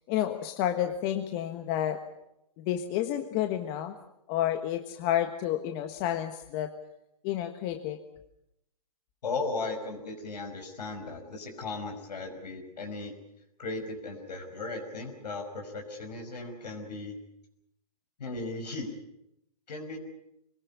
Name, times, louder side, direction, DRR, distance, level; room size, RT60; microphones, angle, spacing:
voice 1, 0.1-2.0 2.6-3.9 4.3-6.7 7.2-8.0, left 11 dB, 35° left, 6 dB, 1.5 m, -30 dB
voice 2, 9.2-13.1 13.6-17.2 18.2-18.9 19.7-20.0, left 3 dB, 80° left, 3 dB, 5.5 m, -36 dB
25.5 x 19.0 x 8.5 m, 0.83 s
hypercardioid pair, 140°, 21 cm